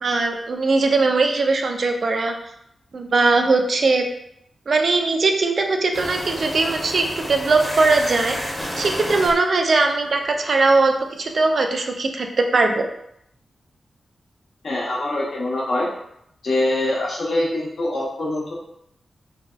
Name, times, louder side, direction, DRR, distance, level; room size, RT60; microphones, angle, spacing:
voice 1, 0.0-2.3 2.9-4.1 4.7-8.4 8.8-12.9, right 3 dB, 65° right, 4 dB, 0.3 m, -20 dB
sound 1, 5.9-10.8, equal, 15° left, 0.8 m, -31 dB
voice 2, 14.6-15.9 16.4-18.5, left 1 dB, 70° left, -5 dB, 0.8 m, -24 dB
2.6 x 2.1 x 2.2 m, 0.75 s
cardioid pair, 55°, 0 cm